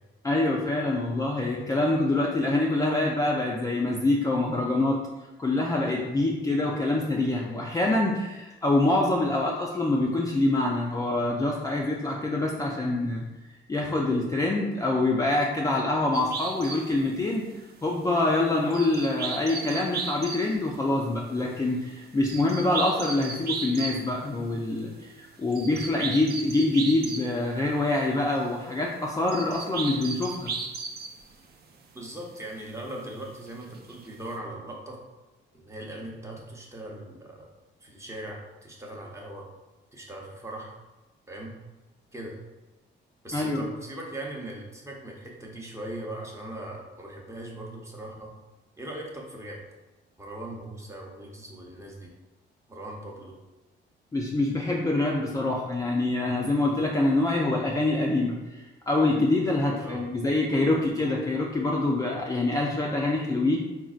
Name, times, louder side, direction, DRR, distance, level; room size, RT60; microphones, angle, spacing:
voice 1, 0.2-5.0 5.4-13.2 13.7-17.4 17.8-30.5 43.3-43.6 54.1-58.6 58.9-63.6, left 2 dB, 15° left, -3 dB, 0.3 m, -25 dB
sound 1, 16.1-24.2 24.5-25.1 25.3-28.4 28.7-31.7 32.9-33.0 33.3-34.1, right 4 dB, 55° right, 0.4 m, -36 dB
voice 2, 31.9-35.0 35.5-37.5 37.8-39.5 39.9-40.8 41.3-41.5 42.1-42.4 43.2-48.3 48.8-49.6 50.2-52.1 52.7-53.4 59.8-60.0, right 1 dB, 15° right, -1 dB, 0.7 m, -39 dB
3.8 x 2.1 x 2.4 m, 1.1 s
cardioid pair, 90°, 20 cm